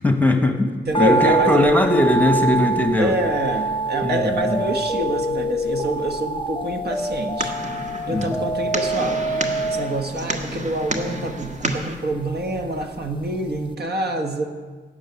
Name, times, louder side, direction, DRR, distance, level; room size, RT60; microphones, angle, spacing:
voice 1, 0.0-0.7 1.0-3.2 4.0-4.6 8.1-8.4, left 1 dB, 10° left, 5 dB, 1.2 m, -19 dB
voice 2, 0.8-1.7 3.0-7.6 8.1-9.2 9.7-14.4, right 1 dB, 55° right, 4 dB, 1.4 m, -26 dB
sound 1, 0.9-13.2 13.5-13.6, right 3 dB, 25° left, 0.7 m, -28 dB
sound 2, 3.9-9.8, equal, 20° right, 2.5 m, -27 dB
sound 3, 6.9-12.0, right 1 dB, 40° right, 1.6 m, -30 dB
12.5 x 6.6 x 9.4 m, 1.4 s
cardioid pair, 90°, 20 cm